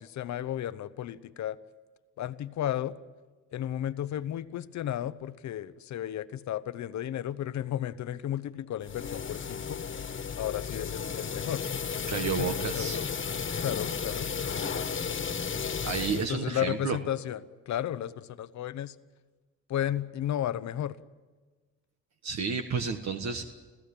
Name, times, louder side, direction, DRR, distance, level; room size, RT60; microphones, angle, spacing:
voice 1, 0.0-1.6 2.2-3.0 3.5-9.8 10.3-13.0 13.6-14.3 16.2-18.9 19.7-21.0, left 11 dB, 65° left, 13 dB, 1.0 m, -34 dB
sound 1, 8.8-16.3, left 6 dB, 40° left, 1.7 m, -34 dB
voice 2, 12.1-13.0 15.8-17.0 22.2-23.5, right 5 dB, 60° right, 5 dB, 1.5 m, -31 dB
27.0 x 16.0 x 8.7 m, 1.3 s
cardioid pair, 90°, 30 cm